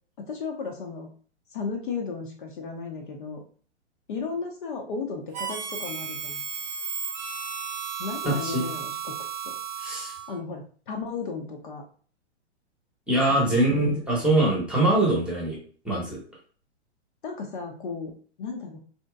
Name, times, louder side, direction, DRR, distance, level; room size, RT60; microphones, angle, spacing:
voice 1, 0.2-1.1 1.5-3.4 4.1-6.4 8.0-9.2 9.4-9.5 10.3-11.8 13.3-13.6 17.2-18.8, left 4 dB, 45° left, 2 dB, 0.6 m, -34 dB
Harmonica, 5.3-10.4, right 7 dB, 40° right, 0.6 m, -34 dB
voice 2, 8.2-8.6 9.8-10.1 13.1-15.6 15.8-16.2, right 1 dB, 5° right, -4 dB, 0.9 m, -23 dB
4.2 x 2.8 x 2.3 m, 0.43 s
figure-of-eight pair, 120°, 35 cm